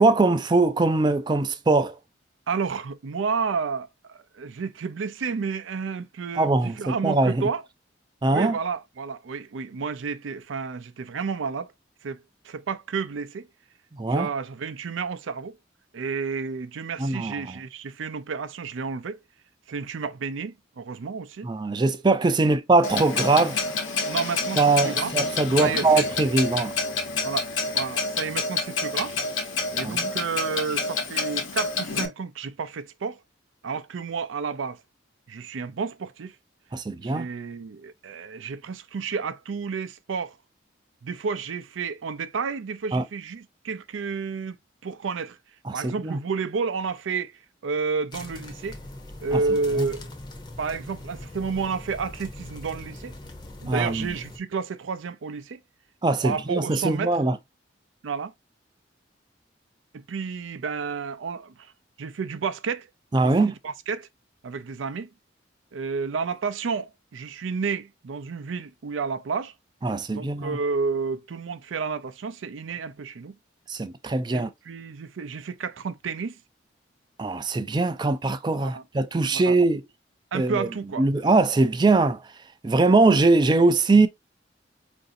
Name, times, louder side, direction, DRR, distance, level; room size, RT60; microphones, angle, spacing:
voice 1, 0.0-2.0 6.4-7.4 8.2-8.6 14.0-14.3 17.0-17.4 21.4-23.6 24.6-26.7 29.8-30.1 36.7-37.3 42.9-43.0 45.7-46.2 49.3-49.4 49.8-49.9 53.7-54.1 56.0-57.4 63.1-63.5 69.8-70.6 73.7-74.5 77.2-79.8 80.3-80.7 81.0-82.2 82.6-84.1, right 3 dB, 20° right, 0.3 m, -21 dB
voice 2, 2.5-7.6 8.3-11.7 12.0-13.5 14.0-15.6 15.9-19.2 19.7-21.5 22.4-22.6 24.0-25.1 25.6-26.1 27.2-27.5 27.7-29.2 29.7-33.2 33.6-34.8 35.3-36.3 37.0-40.4 41.0-44.6 44.8-45.4 45.7-48.8 49.2-50.1 50.6-53.1 53.6-55.6 56.2-57.2 58.0-58.3 59.9-61.7 62.0-62.9 63.2-63.3 63.6-64.1 64.4-65.1 65.7-69.5 70.1-73.3 74.3-76.4 78.6-78.8 79.3-79.6 80.3-81.0 84.0-84.1, right 5 dB, 85° right, 0.5 m, -31 dB
Clock, 22.8-32.1, left 4 dB, 90° left, 1.0 m, -28 dB
sound 1, 48.1-54.4, left 1 dB, 25° left, 0.6 m, -41 dB
4.7 x 2.6 x 2.5 m
head